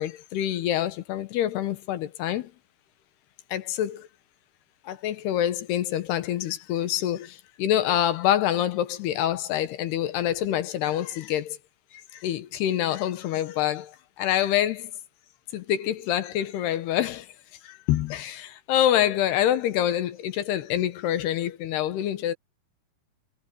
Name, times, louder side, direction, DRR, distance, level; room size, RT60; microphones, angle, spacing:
voice 1, 0.0-2.5 3.5-4.1 4.9-11.6 12.2-13.9 14.2-14.9 15.5-17.3 17.7-22.3, left 11 dB, 75° left, 3.1 m, -26 dB
omnidirectional pair, 4.9 m